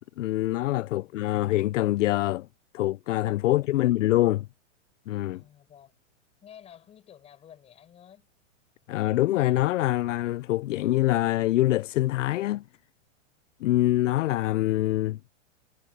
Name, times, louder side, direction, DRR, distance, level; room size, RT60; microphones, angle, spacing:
voice 1, 0.2-2.5 2.7-4.5 5.1-5.4 8.9-12.6 13.6-15.2, left 16 dB, 75° left, 0.5 m, -25 dB
voice 2, 3.5-4.0 5.3-6.0 6.4-8.3, left 9 dB, 15° left, 5.0 m, -53 dB
supercardioid pair, 165°, 38 cm